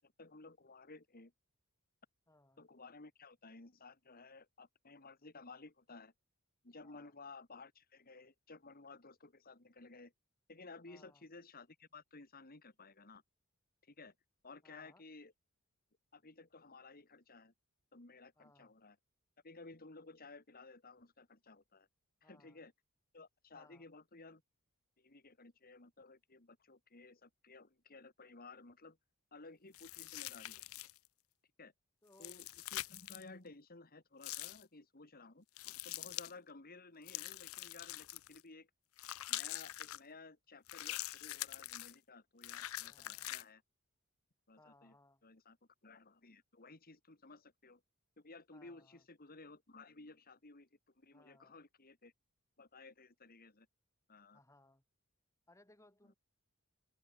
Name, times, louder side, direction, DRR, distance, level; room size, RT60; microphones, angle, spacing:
voice 1, 0.0-1.3 2.6-6.1 6.6-10.1 10.5-13.2 13.8-14.1 14.4-15.3 16.1-17.5 17.9-19.0 19.4-21.9 22.2-22.7 23.1-24.4 25.0-29.0 29.3-30.6 31.6-31.7 32.2-38.7 39.3-43.6 44.5-45.0 45.2-45.6 45.8-47.8 48.2-50.7 51.0-52.1 52.6-53.7 54.1-54.4 56.0-56.1, left 3 dB, 45° left, 2.3 m, -56 dB
voice 2, 2.3-2.6 6.8-7.1 10.9-11.3 14.6-15.0 18.4-18.7 22.2-22.6 23.5-23.9 32.0-32.4 42.8-43.4 44.6-45.2 48.5-49.0 51.1-51.6 54.3-54.8 55.5-56.1, left 2 dB, 15° left, 5.4 m, -66 dB
sound 1, 29.7-31.1 32.1-33.2 34.2-34.6 35.6-36.3 37.1-38.4 39.0-40.0 40.7-41.9 42.4-43.4, left 16 dB, 70° left, 0.5 m, -44 dB
open air
head